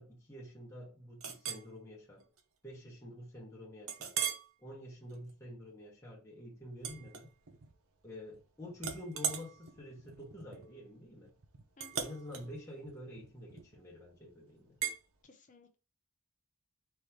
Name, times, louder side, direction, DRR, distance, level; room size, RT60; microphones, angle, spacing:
voice 1, 0.0-2.2 2.6-4.2 4.6-7.3 8.0-11.3 12.0-14.8, left 1 dB, 10° left, 1.2 m, -48 dB
Chink clink, 1.2-1.7 2.2-2.4 2.8-2.9 3.9-4.5 5.0-5.3 6.8-7.7 8.0-8.4 8.8-13.9 14.8-15.0, right 8 dB, 70° right, 0.8 m, -40 dB
voice 2, 15.3-15.7, left 4 dB, 35° left, 0.6 m, -57 dB
4.4 x 3.1 x 3.5 m
head